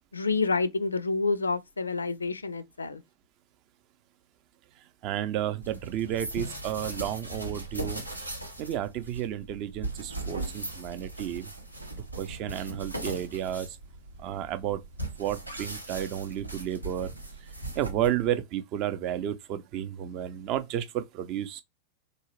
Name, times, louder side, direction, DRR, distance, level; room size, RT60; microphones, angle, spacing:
voice 1, 0.1-3.0, left 3 dB, 75° left, 0.4 m, -28 dB
voice 2, 5.0-8.0 8.6-11.5 12.2-13.7 14.2-14.8 15.2-17.1 17.8-21.6, right 11 dB, 40° right, 0.5 m, -32 dB
sound 1, 5.6-18.4, right 1 dB, 90° right, 0.8 m, -39 dB
3.8 x 2.7 x 3.0 m
figure-of-eight pair, 90°, 0 cm